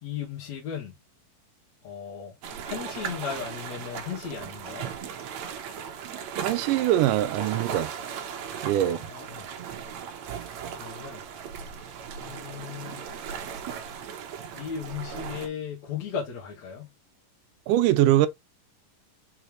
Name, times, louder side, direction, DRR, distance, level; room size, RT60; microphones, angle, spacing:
voice 1, 0.0-0.9 1.8-2.3 2.6-4.9 8.8-9.5 10.3-11.2 11.6-13.1 14.5-16.9, left 7 dB, 55° left, 2.7 m, -37 dB
sound 1, 2.4-15.5, right 7 dB, 65° right, 2.1 m, -37 dB
voice 2, 6.4-7.9 8.6-9.0 17.7-18.3, right 13 dB, 80° right, 2.0 m, -22 dB
5.6 x 5.6 x 3.1 m
omnidirectional pair, 4.0 m